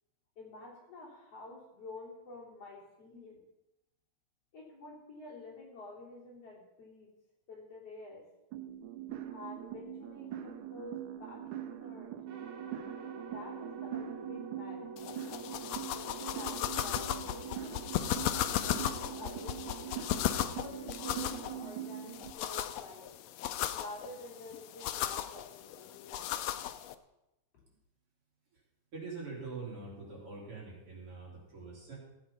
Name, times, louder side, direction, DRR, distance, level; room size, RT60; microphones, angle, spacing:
voice 1, 0.4-3.4 4.5-7.1 7.5-8.2 9.3-12.1 13.3-14.9 15.7-19.8 20.4-23.1 23.7-26.4, left 2 dB, 50° left, -4 dB, 4.3 m, -49 dB
sound 1, 8.5-22.3, right 10 dB, 85° right, 2.5 m, -43 dB
sound 2, 12.3-21.6, right 3 dB, 65° right, 2.6 m, -49 dB
sound 3, 15.0-26.9, left 12 dB, 75° left, 1.5 m, -36 dB
voice 2, 28.9-32.0, right 4 dB, 45° right, -4 dB, 4.4 m, -44 dB
15.0 x 8.7 x 5.5 m, 0.92 s
omnidirectional pair, 3.5 m